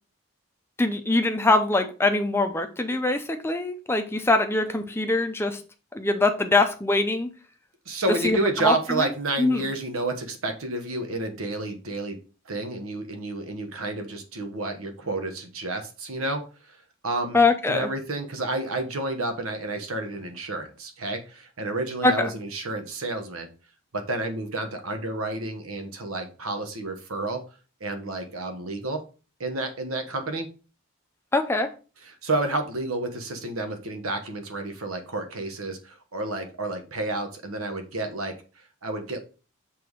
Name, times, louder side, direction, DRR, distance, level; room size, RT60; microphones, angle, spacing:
voice 1, 0.8-5.6 5.9-7.3 8.2-9.1 9.4-9.7 17.3-17.9 22.0-22.3 31.3-31.7, left 2 dB, 10° left, 6 dB, 0.6 m, -23 dB
voice 2, 7.8-12.2 12.4-17.4 17.7-23.5 23.9-27.4 27.8-29.0 29.4-30.5 32.0-39.2, right 2 dB, 85° right, 6 dB, 1.2 m, -30 dB
6.0 x 3.4 x 4.6 m, 0.34 s
head